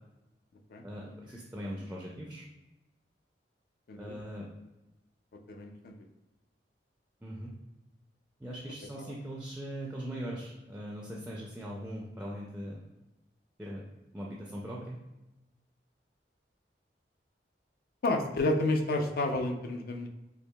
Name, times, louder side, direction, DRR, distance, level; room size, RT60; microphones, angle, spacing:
voice 1, 0.8-2.4 4.0-4.5 7.2-7.5 8.4-12.8 13.6-13.8 14.1-15.0, equal, 5° right, -3 dB, 0.4 m, -40 dB
voice 2, 5.5-5.9 9.0-9.1 18.0-20.1, left 2 dB, 55° left, 5 dB, 0.4 m, -30 dB
4.5 x 2.6 x 2.2 m, 1.0 s
head